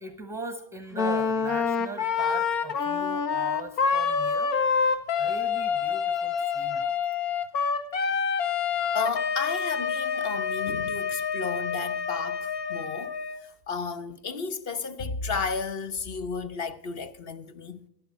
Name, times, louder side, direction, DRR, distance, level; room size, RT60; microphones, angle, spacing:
voice 1, 0.0-4.7 5.2-7.0, right 3 dB, 5° right, 0.7 m, -40 dB
Wind instrument woodwind instrument, 0.9-13.4, left 6 dB, 85° left, 1.6 m, -27 dB
voice 2, 8.9-13.1 13.7-17.8, left 5 dB, 35° left, 1.0 m, -33 dB
12.5 x 12.0 x 4.8 m
supercardioid pair, 140°, 49 cm